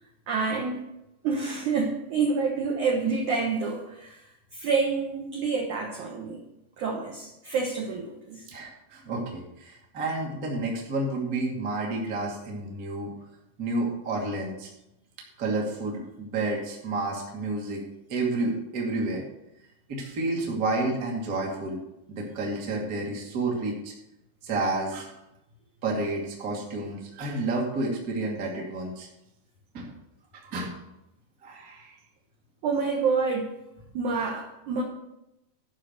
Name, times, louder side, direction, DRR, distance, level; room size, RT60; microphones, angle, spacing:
voice 1, 0.3-0.8 1.2-4.2 4.5-6.4 6.8-8.4 32.6-33.5 33.9-34.8, right 4 dB, 70° right, 0 dB, 1.8 m, -28 dB
voice 2, 8.5-13.1 13.6-14.7 15.4-17.8 18.1-19.2 19.9-21.8 22.1-23.9 24.4-25.2 25.8-29.1 29.7-29.9 30.3-30.8 31.4-31.9, right 2 dB, 35° right, -1 dB, 1.4 m, -30 dB
12.5 x 5.7 x 6.6 m, 0.89 s
omnidirectional pair, 5.3 m